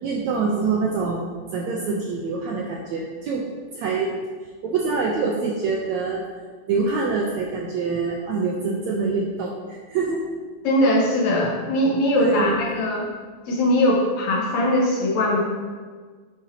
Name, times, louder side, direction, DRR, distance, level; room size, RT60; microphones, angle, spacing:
voice 1, 0.0-3.4 3.7-4.1 4.6-6.3 6.7-10.2 12.2-12.6, right 4 dB, 75° right, -1 dB, 1.7 m, -25 dB
voice 2, 10.6-13.1 13.5-15.4, left 1 dB, 70° left, -2 dB, 1.8 m, -20 dB
9.9 x 8.0 x 2.8 m, 1.5 s
omnidirectional pair, 4.0 m